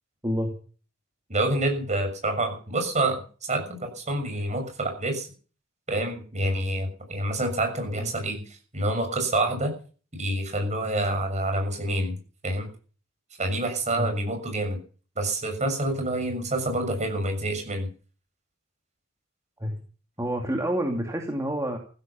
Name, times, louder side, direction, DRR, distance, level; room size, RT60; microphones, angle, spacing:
voice 1, 1.3-5.3 5.9-9.7 10.2-12.2 12.4-12.7 13.4-14.8 15.2-17.9, right 1 dB, 35° right, 5 dB, 6.6 m, -27 dB
voice 2, 20.2-21.8, equal, 15° right, 1 dB, 2.6 m, -28 dB
15.5 x 15.0 x 5.8 m, 0.40 s
head